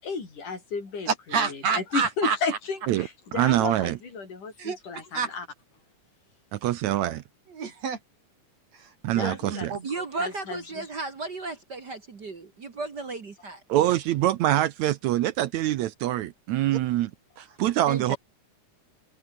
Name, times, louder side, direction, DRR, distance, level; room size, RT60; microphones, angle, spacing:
voice 1, 0.0-5.5 9.1-9.7 10.2-10.9, left 4 dB, 75° left, 7.0 m, -33 dB
voice 2, 1.1-2.4 4.6-4.8 5.1-5.3 7.5-8.0 8.7-10.0, right 6 dB, 55° right, 4.1 m, -29 dB
voice 3, 2.9-4.0 6.5-7.2 9.0-9.7 13.7-17.1 17.4-18.2, right 14 dB, 70° right, 2.0 m, -25 dB
voice 4, 9.8-13.6 17.9-18.2, right 3 dB, 40° right, 2.1 m, -34 dB
omnidirectional pair, 3.6 m